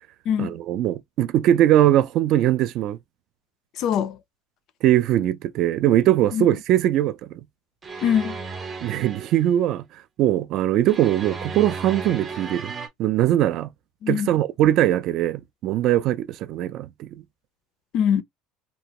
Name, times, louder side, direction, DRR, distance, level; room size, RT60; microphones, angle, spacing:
voice 1, 0.4-3.0 4.8-7.3 8.8-9.8 10.2-12.7 13.0-13.7 14.1-17.1, right 12 dB, 45° right, 0.4 m, -21 dB
voice 2, 3.8-4.2 6.3-6.4 8.0-8.4 14.0-14.3 17.9-18.2, left 8 dB, 40° left, 0.4 m, -22 dB
sound 1, 7.8-9.5 10.9-12.9, right 4 dB, 15° right, 0.7 m, -34 dB
3.0 x 2.2 x 2.9 m
cardioid pair, 165°, 0 cm